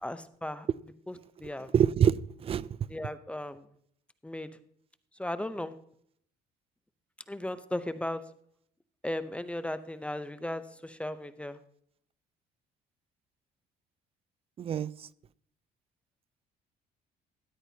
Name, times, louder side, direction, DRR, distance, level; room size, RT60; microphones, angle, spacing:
voice 1, 0.0-0.7 1.1-1.2 1.4-1.7 2.9-3.6 4.2-4.5 5.2-5.7 7.3-8.2 9.0-11.6, left 1 dB, 5° left, 0.6 m, -36 dB
voice 2, 1.7-2.7 14.6-14.9, right 8 dB, 35° right, 0.3 m, -25 dB
13.5 x 10.0 x 2.8 m
cardioid pair, 110°, 17 cm